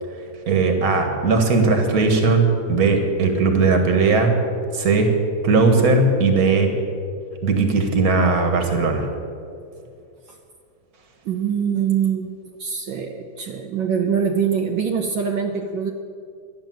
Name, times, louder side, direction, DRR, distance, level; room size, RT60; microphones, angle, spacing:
voice 1, 0.5-4.3 4.7-5.1 5.4-6.7 7.4-9.1, right 4 dB, 50° right, 4 dB, 2.0 m, -18 dB
voice 2, 11.2-12.3 12.6-15.9, right 7 dB, 75° right, 2 dB, 1.5 m, -23 dB
12.5 x 10.5 x 7.7 m, 2.4 s
omnidirectional pair, 2.2 m